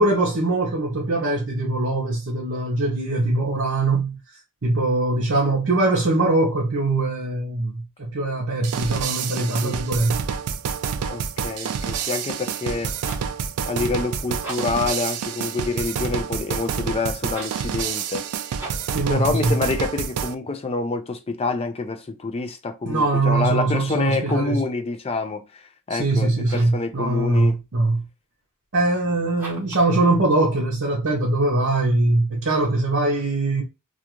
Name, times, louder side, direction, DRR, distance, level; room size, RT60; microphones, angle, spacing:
voice 1, 0.0-4.2 4.6-10.2 18.9-19.5 22.8-24.6 25.9-28.0 28.7-33.6, right 2 dB, 55° right, 0.7 m, -22 dB
sound 1, 8.6-20.3, right 7 dB, 85° right, 0.4 m, -28 dB
voice 2, 9.4-9.8 11.1-12.9 13.7-18.3 19.1-25.6 25.9-27.6, left 3 dB, 25° left, 0.4 m, -27 dB
sound 2, 13.0-13.4 14.3-14.9 17.2-17.7 18.5-19.0 24.0-24.6 26.4-26.9 29.3-29.9, right 2 dB, 10° right, 0.9 m, -39 dB
2.4 x 2.4 x 2.9 m
head